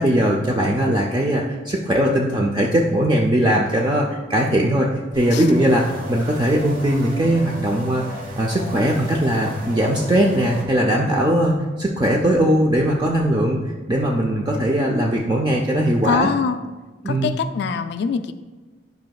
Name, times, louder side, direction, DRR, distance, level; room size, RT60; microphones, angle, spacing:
voice 1, 0.0-4.9 5.1-13.6 13.9-16.3 17.0-17.3, right 1 dB, 25° right, -1 dB, 0.5 m, -20 dB
sound 1, 5.1-10.7, equal, 50° right, 1.3 m, -35 dB
voice 2, 16.0-16.6 17.1-18.3, left 6 dB, 65° left, 11 dB, 0.3 m, -23 dB
10.5 x 5.1 x 2.3 m, 1.2 s
head